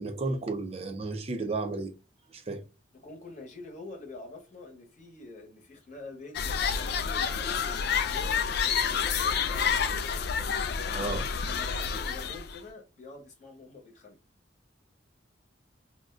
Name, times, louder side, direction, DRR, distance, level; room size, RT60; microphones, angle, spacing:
voice 1, 0.0-1.9 2.3-2.6 10.9-11.2, right 3 dB, 35° right, 0.4 m, -33 dB
voice 2, 3.0-10.1 11.0-14.2, left 2 dB, 40° left, 0.9 m, -46 dB
sound 1, 6.3-12.6, left 6 dB, 60° left, 0.3 m, -29 dB
2.4 x 2.1 x 3.5 m
head